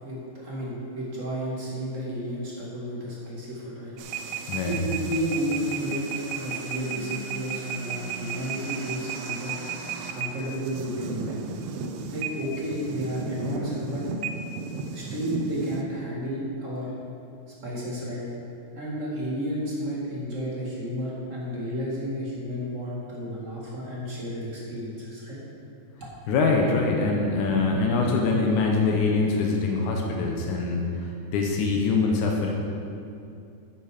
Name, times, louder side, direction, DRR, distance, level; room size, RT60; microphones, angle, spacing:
voice 1, 0.0-3.9 4.7-6.1 6.3-9.5 10.1-11.4 12.1-14.0 14.9-16.9 17.6-18.2 18.7-25.4, equal, 30° right, -5 dB, 2.1 m, -32 dB
sound 1, 4.0-15.8, right 5 dB, 75° right, 1.5 m, -34 dB
voice 2, 26.3-32.5, left 3 dB, 90° left, 1 dB, 2.5 m, -24 dB
10.0 x 8.6 x 5.1 m, 2.6 s
omnidirectional pair, 3.4 m